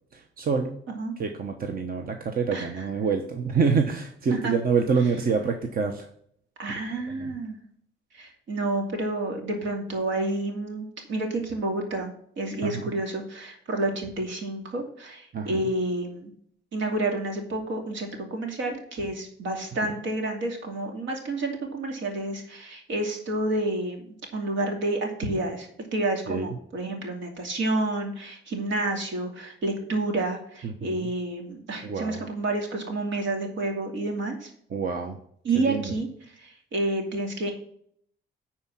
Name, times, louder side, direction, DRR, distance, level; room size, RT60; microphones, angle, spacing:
voice 1, 0.1-0.7 1.2-6.1 7.2-7.3 12.6-12.8 15.3-15.6 19.8-19.9 26.3-26.5 30.6-31.1 31.8-32.2 34.7-35.2 35.5-35.9, right 5 dB, 45° right, 5 dB, 1.0 m, -27 dB
voice 2, 2.5-2.9 4.3-4.5 6.6-7.6 8.1-16.3 16.7-24.0 24.3-34.5 35.4-36.1 36.4-37.5, right 2 dB, 75° right, 3 dB, 2.5 m, -29 dB
9.6 x 4.4 x 6.1 m, 0.64 s
cardioid pair, 90°, 20 cm